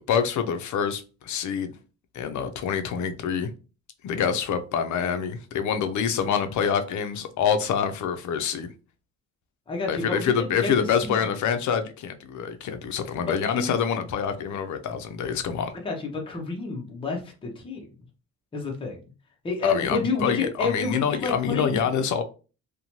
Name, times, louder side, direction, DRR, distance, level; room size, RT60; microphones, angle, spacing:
voice 1, 0.0-1.8 2.1-3.5 4.0-8.7 9.9-15.7 19.6-22.2, left 7 dB, 65° left, 0.5 m, -26 dB
voice 2, 9.7-11.2 13.5-13.8 15.8-17.9 18.5-19.0 19.4-21.9, left 4 dB, 15° left, 0.6 m, -30 dB
2.6 x 2.1 x 2.9 m
cardioid pair, 135°, 32 cm